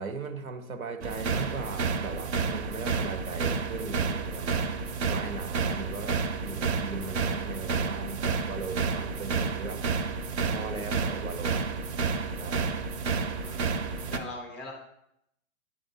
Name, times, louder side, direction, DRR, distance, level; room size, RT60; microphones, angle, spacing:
voice 1, 0.0-4.6 5.1-9.8 10.4-11.6 12.4-12.9, right 4 dB, 85° right, 6 dB, 1.0 m, -38 dB
sound 1, 1.0-14.2, right 4 dB, 50° right, 0.6 m, -30 dB
voice 2, 13.0-13.7 14.1-14.7, left 2 dB, ahead, 1 dB, 0.3 m, -42 dB
9.3 x 3.7 x 2.7 m, 0.78 s
hypercardioid pair, 115°, 42 cm